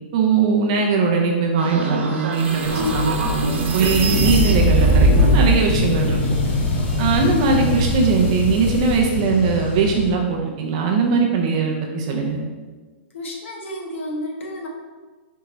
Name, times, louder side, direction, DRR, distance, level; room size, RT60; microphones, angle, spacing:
voice 1, 0.1-6.2 7.0-12.4, right 4 dB, 30° right, 1 dB, 0.4 m, -20 dB
sound 1, 1.6-5.6, right 1 dB, 75° right, 0.8 m, -20 dB
sound 2, 2.6-9.0, left 4 dB, 65° left, 0.7 m, -29 dB
voice 2, 2.7-3.3 3.6-3.8 13.1-14.7, left 1 dB, 85° left, 0 dB, 1.0 m, -32 dB
sound 3, 4.1-10.1, left 2 dB, 45° left, 1.1 m, -24 dB
4.4 x 3.7 x 3.0 m, 1.4 s
hypercardioid pair, 180°, 7 cm